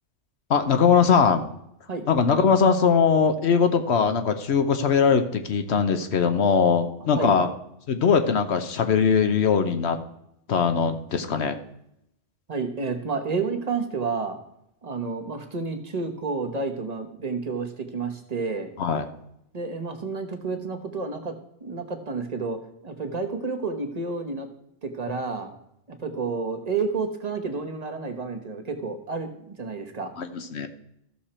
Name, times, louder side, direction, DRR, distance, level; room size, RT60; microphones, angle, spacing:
voice 1, 0.5-1.4 2.1-7.5 7.9-10.0 10.5-11.6 18.8-19.0 30.2-30.7, left 6 dB, 65° left, 8 dB, 1.1 m, -21 dB
voice 2, 12.5-14.4 14.8-18.7 19.5-21.3 21.6-24.5 24.8-25.5 25.9-30.1, right 4 dB, 35° right, 5 dB, 1.3 m, -30 dB
14.0 x 6.5 x 4.3 m, 0.79 s
omnidirectional pair, 1.3 m